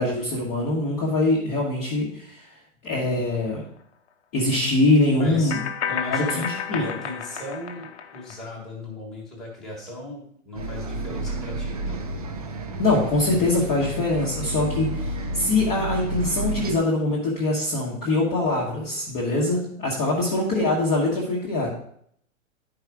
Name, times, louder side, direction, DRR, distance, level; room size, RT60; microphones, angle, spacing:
voice 1, 0.0-2.5 2.8-3.6 4.3-5.6 6.1-6.9 12.8-21.7, left 2 dB, 15° left, -5 dB, 1.1 m, -23 dB
sound 1, 3.4-3.5 5.5-8.4, left 7 dB, 50° left, 0.9 m, -31 dB
voice 2, 5.2-5.5 5.9-12.0, left 2 dB, ahead, -4 dB, 1.4 m, -37 dB
Bus, 10.5-16.7, right 1 dB, 30° right, 0.5 m, -31 dB
10.5 x 4.8 x 4.7 m, 0.66 s
hypercardioid pair, 175°, 42 cm